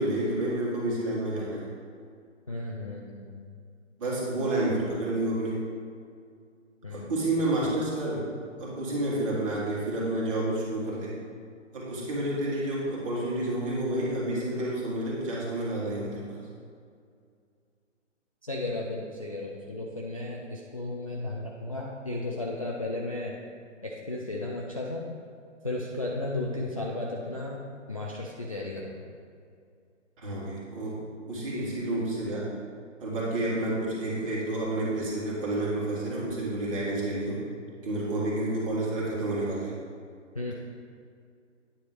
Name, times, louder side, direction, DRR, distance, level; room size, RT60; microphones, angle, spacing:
voice 1, 0.0-1.7 4.0-5.6 6.9-8.3 8.6-11.2 11.7-16.4 30.2-31.0 31.3-32.4 33.0-37.4 37.8-39.7, right 1 dB, 25° right, -6 dB, 1.7 m, -29 dB
voice 2, 2.5-3.4 6.8-7.1 7.4-7.7 18.5-23.4 23.8-25.1 25.6-27.6 27.9-29.0 31.5-31.7 40.3-40.5, left 2 dB, 30° left, -3 dB, 0.4 m, -34 dB
9.0 x 3.9 x 4.9 m, 2.3 s
hypercardioid pair, 150°, 37 cm